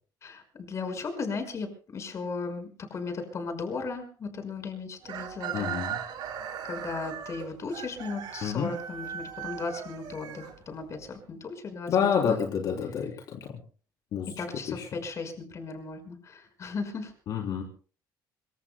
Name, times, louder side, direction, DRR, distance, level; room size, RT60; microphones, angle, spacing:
voice 1, 0.2-5.8 6.6-12.3 14.4-17.1, left 4 dB, 40° left, 6 dB, 5.6 m, -36 dB
Chicken rooster, 5.0-11.0, right 9 dB, 75° right, 4.9 m, -38 dB
voice 2, 5.5-5.9 8.4-8.7 11.9-13.5 14.1-14.3 14.8-14.9 17.3-17.6, left 7 dB, 60° left, 0 dB, 3.4 m, -28 dB
26.0 x 24.5 x 2.3 m, 0.40 s
cardioid pair, 135°, 8 cm